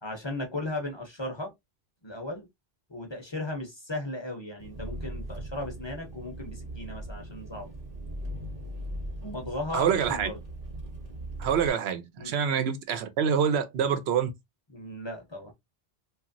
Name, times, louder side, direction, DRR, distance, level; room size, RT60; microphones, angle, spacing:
voice 1, 0.0-1.5 2.0-2.5 2.9-7.7 9.2-10.4 12.2-12.3 14.7-15.5, left 1 dB, 30° left, 0.6 m, -36 dB
Engine, 4.6-11.7, right 1 dB, 45° right, 0.8 m, -39 dB
voice 2, 9.7-10.3 11.4-14.3, right 7 dB, 85° right, 0.9 m, -26 dB
2.9 x 2.4 x 2.5 m
omnidirectional pair, 1.0 m